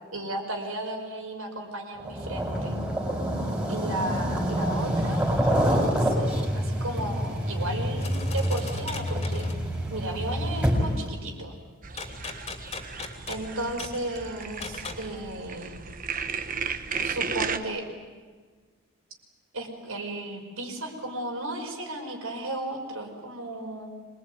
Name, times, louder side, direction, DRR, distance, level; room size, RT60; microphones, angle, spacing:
voice 1, 0.1-2.7 3.7-9.5 9.9-11.6 13.3-15.7 17.0-17.8 19.5-23.9, right 1 dB, 70° right, 2 dB, 5.5 m, -34 dB
sound 1, 2.0-11.1, equal, 10° right, 4.9 m, -27 dB
sound 2, 8.0-9.6 12.0-15.1, left 3 dB, 30° left, 3.0 m, -38 dB
sound 3, 11.8-17.6, right 5 dB, 40° right, 1.3 m, -34 dB
26.5 x 21.0 x 9.4 m, 1.5 s
head